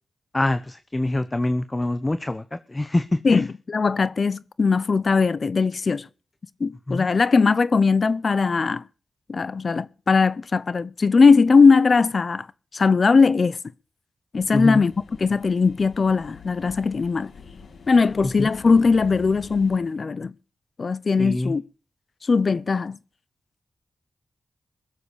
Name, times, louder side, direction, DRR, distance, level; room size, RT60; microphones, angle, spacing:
voice 1, 0.3-3.4 6.9-7.1 14.5-14.8 18.4-18.5 21.2-21.6, left 2 dB, 25° left, 1.0 m, -25 dB
voice 2, 3.2-6.1 6.6-8.8 9.3-12.5 12.7-13.6 14.3-14.9 15.2-17.3 17.9-20.3 20.8-21.6 22.3-23.0, left 4 dB, 55° left, 0.7 m, -19 dB
sound 1, 14.4-19.8, left 5 dB, 85° left, 2.5 m, -45 dB
22.0 x 7.9 x 5.1 m
cardioid pair, 65°, 0 cm